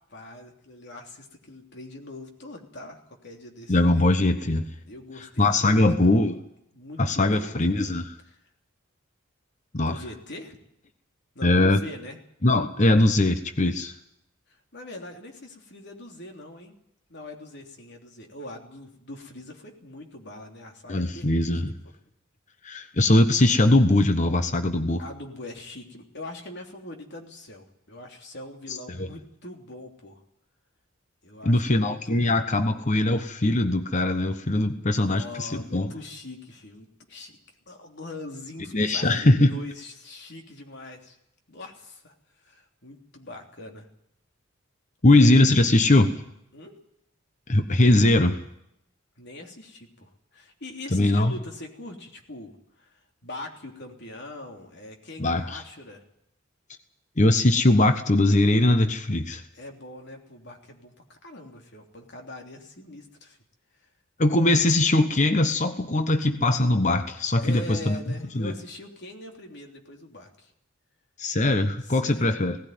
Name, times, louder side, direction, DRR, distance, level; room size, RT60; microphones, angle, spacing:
voice 1, 0.1-4.1 4.8-5.9 6.7-7.7 8.3-8.4 9.8-10.6 11.3-12.2 14.5-16.7 17.1-21.6 25.0-30.2 31.2-32.6 34.8-37.4 37.7-41.2 41.5-43.9 46.5-46.7 49.2-56.0 59.5-63.4 63.7-63.9 67.4-70.5 71.8-72.3, left 1 dB, 55° left, 2 dB, 3.3 m, -42 dB
voice 2, 3.7-4.6 5.4-6.4 7.0-8.1 9.7-10.0 11.4-11.8 12.4-13.9 20.9-21.7 22.6-25.0 29.0-29.1 31.4-35.9 38.7-39.5 45.0-46.1 47.5-48.4 50.9-51.3 55.2-55.6 57.2-59.4 64.2-68.0 68.3-68.5 71.2-72.6, left 2 dB, 35° left, 8 dB, 1.1 m, -21 dB
18.0 x 16.0 x 9.4 m, 0.76 s
head